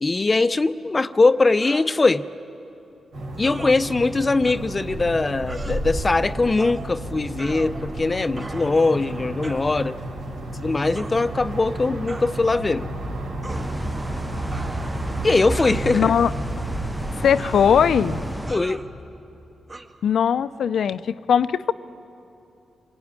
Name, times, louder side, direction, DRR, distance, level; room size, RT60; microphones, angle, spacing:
voice 1, 0.0-2.3 3.4-10.0 10.5-12.9 15.2-16.1 18.5-18.9, left 3 dB, 35° left, 12 dB, 0.7 m, -21 dB
sound 1, 1.6-1.9 3.4-3.7 4.4-4.6 5.4-5.8 6.6-6.9 7.4-8.0 8.4-8.8 9.4-9.7 10.9-11.2 12.1-12.3 13.4-13.7 14.5-15.1 15.6-16.2 17.4-17.7 18.5-18.9 19.7-19.9, right 2 dB, 30° right, 2.4 m, -39 dB
sound 2, 3.1-18.3, right 1 dB, 90° right, 5.4 m, -32 dB
sound 3, 13.5-18.5, right 1 dB, 5° right, 0.8 m, -32 dB
voice 2, 15.9-16.3 17.2-18.2 20.0-21.7, left 8 dB, 75° left, 14 dB, 0.7 m, -19 dB
26.0 x 21.5 x 9.7 m, 3.0 s
cardioid pair, 55°, 0 cm